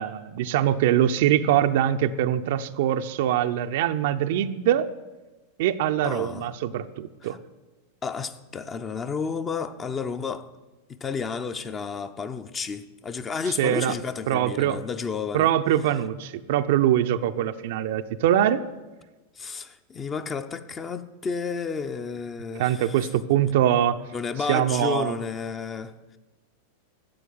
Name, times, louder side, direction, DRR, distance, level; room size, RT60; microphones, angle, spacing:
voice 1, 0.0-4.9 5.6-7.4 13.6-13.9 14.3-14.8 15.3-18.6 22.6-24.0 24.5-25.2, right 11 dB, 50° right, 0.6 m, -23 dB
voice 2, 6.0-6.5 7.2-7.4 8.0-10.5 10.9-15.5 19.4-23.1 24.1-26.2, left 5 dB, 20° left, 0.8 m, -32 dB
13.0 x 8.3 x 9.6 m
figure-of-eight pair, 90°, 0 cm